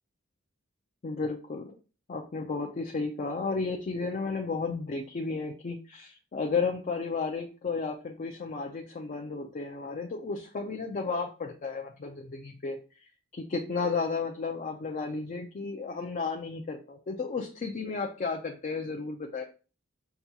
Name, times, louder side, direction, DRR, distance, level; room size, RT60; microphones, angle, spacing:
voice 1, 1.0-1.7 2.1-12.8 13.3-19.4, left 4 dB, 35° left, 3 dB, 0.4 m, -33 dB
5.8 x 2.2 x 2.7 m, 0.34 s
head